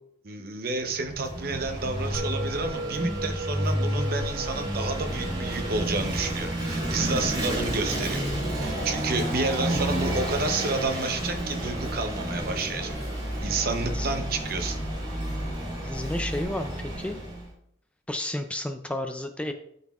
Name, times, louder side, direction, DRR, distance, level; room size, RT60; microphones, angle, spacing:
voice 1, 0.2-8.2 8.5-13.0 13.4-14.8, right 3 dB, 50° right, 6 dB, 0.7 m, -30 dB
Vehicle / Engine, 0.9-17.5, right 1 dB, 25° right, 2.4 m, -30 dB
Musical instrument, 2.1-12.7, right 1 dB, 90° right, 0.4 m, -41 dB
sound 1, 5.1-10.4 10.7-13.4 13.7-16.8, left 1 dB, 55° left, 1.4 m, -49 dB
voice 2, 15.8-17.2 18.1-19.5, left 1 dB, 5° left, 6 dB, 0.3 m, -32 dB
12.0 x 4.1 x 2.4 m, 0.72 s
head